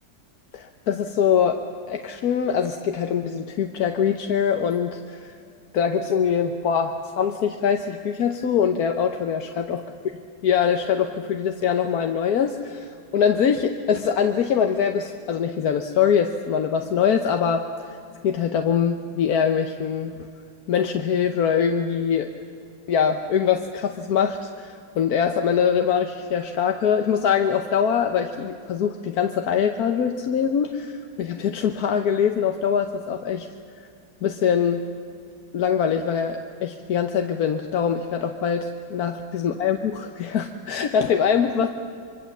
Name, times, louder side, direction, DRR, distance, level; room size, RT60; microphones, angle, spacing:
voice 1, 0.5-5.3 5.7-9.8 10.4-18.0 18.2-20.1 20.7-22.3 22.9-33.5 34.2-34.8 35.5-41.7, left 7 dB, 60° left, 5 dB, 1.3 m, -23 dB
26.0 x 23.5 x 7.3 m, 2.4 s
omnidirectional pair, 2.1 m